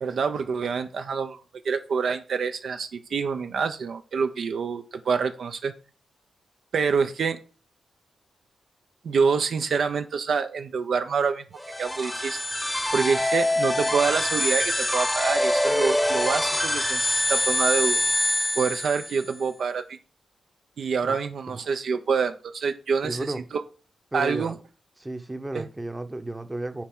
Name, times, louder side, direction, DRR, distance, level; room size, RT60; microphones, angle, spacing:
voice 1, 0.0-1.4 1.6-5.7 6.7-7.4 9.0-12.4 12.9-18.0 18.6-20.0 20.8-23.6 24.1-24.5 25.5-25.7, right 5 dB, 70° right, 0.5 m, -26 dB
sound 1, 11.6-19.3, left 1 dB, 10° left, 0.8 m, -25 dB
voice 2, 23.0-23.4 24.1-24.6 25.0-26.8, right 2 dB, 20° right, 0.8 m, -33 dB
7.2 x 4.3 x 3.7 m
cardioid pair, 70°, 0 cm